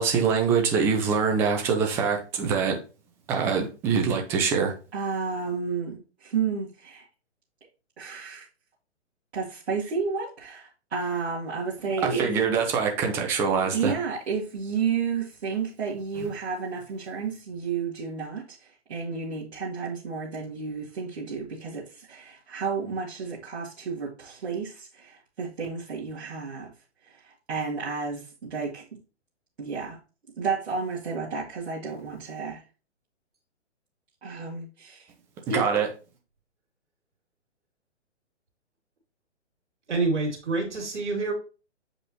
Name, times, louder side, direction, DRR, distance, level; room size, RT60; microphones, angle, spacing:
voice 1, 0.0-2.8 3.3-4.7 12.0-13.9 35.5-35.9, right 6 dB, 5° right, 0.4 m, -24 dB
voice 2, 4.9-7.1 8.0-8.5 9.3-12.3 13.7-26.7 27.0-29.0 29.6-30.0 30.4-32.6 34.2-35.1 35.5-35.7, right 5 dB, 60° right, 2.1 m, -31 dB
voice 3, 39.9-41.3, right 3 dB, 75° right, 2.7 m, -27 dB
7.5 x 5.2 x 2.9 m
figure-of-eight pair, 130°, 36 cm